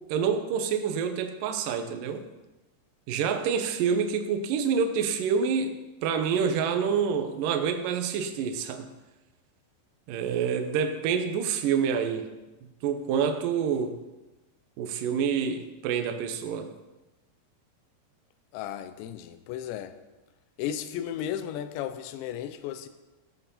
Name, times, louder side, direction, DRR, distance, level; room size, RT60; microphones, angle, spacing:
voice 1, 0.1-2.2 3.1-5.7 6.0-8.9 10.1-12.3 12.8-14.0 14.8-16.7, right 6 dB, 75° right, 6 dB, 2.0 m, -27 dB
voice 2, 18.5-20.0 20.6-22.9, left 10 dB, 80° left, 11 dB, 3.0 m, -34 dB
15.0 x 8.1 x 5.6 m, 1.1 s
omnidirectional pair, 5.3 m